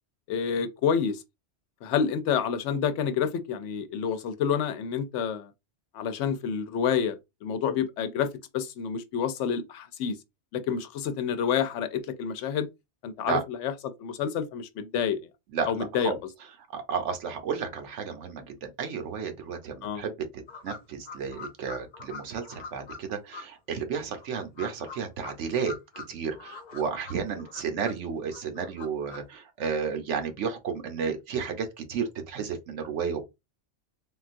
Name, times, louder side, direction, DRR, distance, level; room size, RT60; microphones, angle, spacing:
voice 1, 0.3-1.2 1.8-5.5 5.9-8.3 8.5-10.2 10.5-12.7 13.0-13.7 14.0-15.2 15.7-16.1 19.8-20.0, left 7 dB, 85° left, 0.9 m, -28 dB
voice 2, 15.5-16.2 16.7-25.7 26.1-33.2, right 6 dB, 80° right, 1.0 m, -32 dB
sound 1, 20.5-23.0 23.3-23.4 24.1-26.1 26.3-28.0 28.3-29.2, left 4 dB, 45° left, 0.7 m, -43 dB
3.7 x 2.3 x 2.5 m
omnidirectional pair, 1.2 m